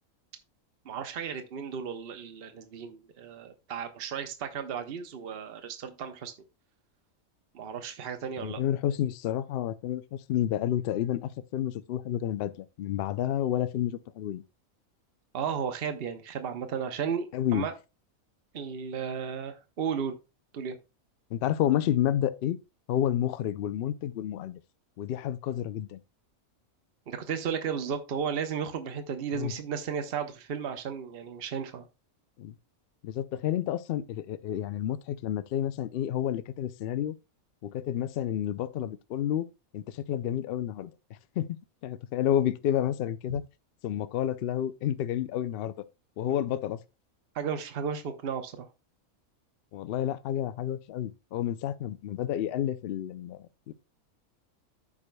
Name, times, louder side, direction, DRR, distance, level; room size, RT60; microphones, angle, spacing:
voice 1, 0.8-6.3 7.5-8.6 15.3-17.7 18.5-20.2 20.5-20.8 27.1-31.8 47.3-48.7, right 7 dB, 45° right, 1.0 m, -34 dB
voice 2, 8.4-14.4 17.3-17.7 21.3-22.6 22.9-24.6 25.0-26.0 29.3-29.5 32.4-32.5 33.0-37.2 37.6-39.5 39.7-40.9 41.4-41.5 41.8-43.4 43.8-45.7 46.2-46.8 49.7-53.4 53.7-53.8, left 11 dB, 75° left, 0.5 m, -30 dB
14.5 x 4.9 x 2.2 m
omnidirectional pair, 1.5 m